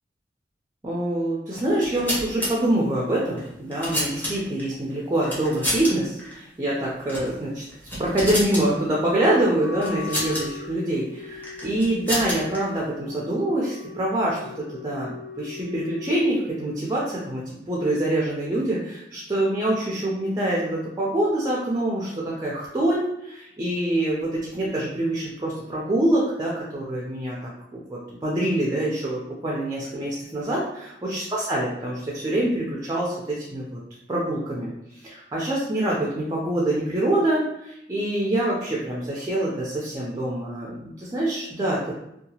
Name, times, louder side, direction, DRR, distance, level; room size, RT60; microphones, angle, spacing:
voice 1, 0.8-7.6 8.0-33.8 34.1-41.9, right 1 dB, 20° right, -4 dB, 0.4 m, -25 dB
sound 1, 1.7-2.5 3.4-4.6 5.2-5.9 6.2-6.3 7.0-7.3 7.7-8.7 9.8-10.4 11.4-12.6, equal, 10° left, 0.8 m, -29 dB
Wind instrument woodwind instrument, 9.2-16.3, left 5 dB, 70° left, 0.7 m, -39 dB
2.8 x 2.3 x 2.7 m, 0.81 s
head